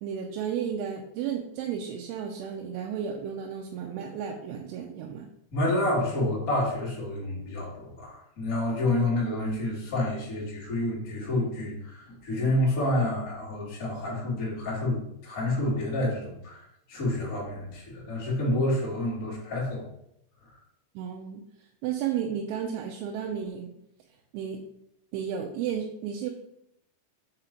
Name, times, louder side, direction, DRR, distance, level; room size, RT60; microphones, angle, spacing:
voice 1, 0.0-5.3 21.0-21.4 21.8-23.7 24.3-24.6 25.1-26.3, right 8 dB, 90° right, 1 dB, 3.1 m, -33 dB
voice 2, 5.5-16.6 16.9-19.8, left 1 dB, 30° left, -6 dB, 1.6 m, -28 dB
6.7 x 3.8 x 4.4 m, 0.77 s
omnidirectional pair, 5.3 m